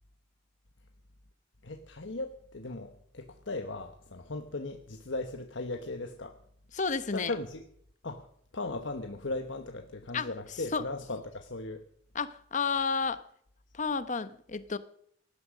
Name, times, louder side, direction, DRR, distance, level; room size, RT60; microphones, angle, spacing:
voice 1, 1.6-6.4 7.1-7.6 8.0-8.3 8.5-11.8, left 2 dB, 75° left, 6 dB, 1.2 m, -37 dB
voice 2, 6.7-7.3 10.1-10.3 10.7-10.8 12.1-13.2 13.7-14.8, left 5 dB, 40° left, 13 dB, 0.9 m, -31 dB
17.5 x 12.0 x 6.4 m, 0.67 s
head